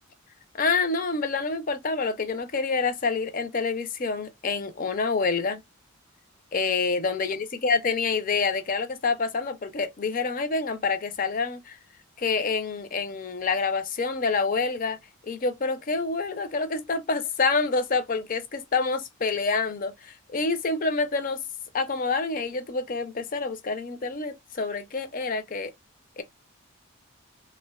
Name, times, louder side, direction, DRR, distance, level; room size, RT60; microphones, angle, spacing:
voice 1, 0.5-5.6 6.5-11.8 12.2-15.0 15.2-21.4 21.7-25.7 26.2-26.3, left 4 dB, 40° left, 0.5 m, -27 dB
3.3 x 2.1 x 2.2 m
head